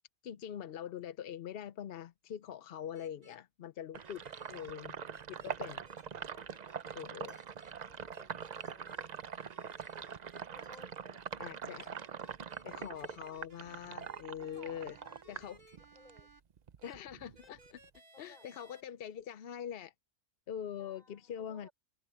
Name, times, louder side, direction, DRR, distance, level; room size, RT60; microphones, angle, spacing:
voice 1, 0.2-4.2 4.5-4.9 5.3-5.8 6.9-7.4 11.4-11.9 12.6-14.9 15.3-15.6 16.8-17.8 18.2-19.9 20.5-21.7, left 9 dB, 60° left, 0.6 m, -43 dB
sound 1, 2.1-3.6 3.9-4.0 4.2-6.6 7.1-8.3 8.7-12.5 12.8-14.7 15.0-15.1 15.3-16.3 16.7-18.7 19.1-19.9, left 3 dB, 85° left, 4.8 m, -75 dB
sound 2, 2.9-3.4 3.9-4.7 5.1-5.9 6.5-7.0 7.3-7.7 8.1-9.1 9.4-10.9 11.7-16.4 16.8-16.9 17.3-18.8, right 3 dB, 80° right, 4.7 m, -60 dB
Sink (filling or washing), 3.9-16.2 16.6-18.0, right 7 dB, 60° right, 0.4 m, -44 dB
voice 2, 6.3-10.2 10.5-11.2 12.1-12.7 14.3-15.4 15.9-16.4 18.1-18.5 20.8-21.7, left 1 dB, 30° left, 5.9 m, -61 dB
omnidirectional pair, 1.5 m